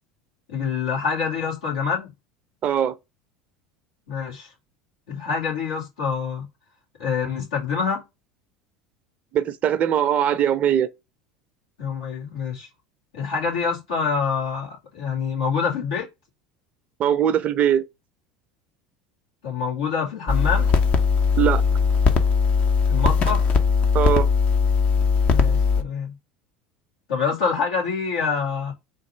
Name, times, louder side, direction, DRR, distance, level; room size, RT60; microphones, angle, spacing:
voice 1, 0.5-2.1 4.1-4.5 5.1-6.4 7.0-8.0 11.8-12.7 13.1-16.1 19.4-20.7 22.9-23.5 25.2-26.1 27.1-28.7, left 5 dB, 70° left, 2.1 m, -26 dB
voice 2, 2.6-3.0 9.3-10.9 17.0-17.8 21.4-21.6 23.9-24.3, right 9 dB, 40° right, 0.5 m, -21 dB
sound 1, 20.3-25.8, left 5 dB, 40° left, 0.8 m, -19 dB
4.0 x 2.5 x 4.8 m
hypercardioid pair, 75°, 4 cm